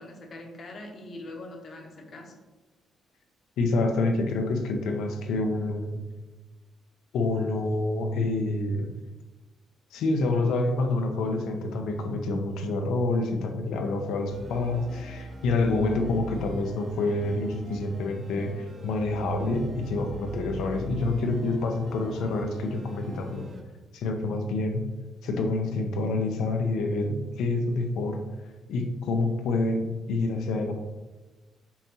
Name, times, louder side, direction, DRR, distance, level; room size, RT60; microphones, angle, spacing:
voice 1, 0.0-2.3, left 2 dB, 50° left, 2 dB, 0.9 m, -42 dB
voice 2, 3.6-6.0 7.1-8.9 9.9-23.5 23.9-24.8 25.2-28.2 28.7-30.7, left 2 dB, 80° left, 4 dB, 0.6 m, -27 dB
sound 1, 14.3-23.6, right 2 dB, 45° right, 0.6 m, -43 dB
5.5 x 2.8 x 2.8 m, 1.2 s
cardioid pair, 95°, 0 cm